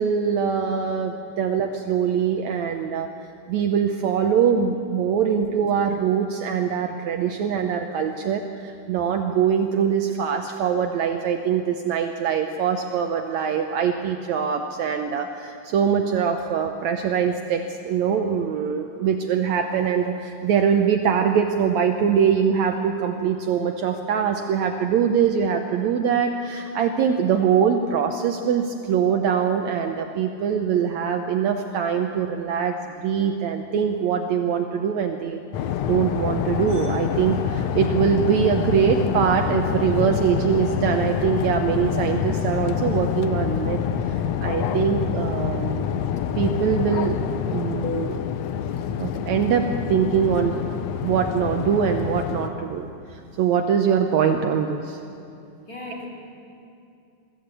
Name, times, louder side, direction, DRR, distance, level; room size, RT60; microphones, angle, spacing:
voice 1, 0.0-3.1 3.5-35.4 35.8-43.8 44.1-46.0 46.4-47.2 47.5-48.2 49.0-50.6 51.0-55.0, right 7 dB, 70° right, 5 dB, 1.9 m, -23 dB
sound 1, 35.5-52.5, left 8 dB, 70° left, 1.7 m, -26 dB
voice 2, 55.7-56.1, left 2 dB, 25° left, -3 dB, 3.1 m, -37 dB
22.5 x 15.0 x 8.3 m, 2.5 s
omnidirectional pair, 3.8 m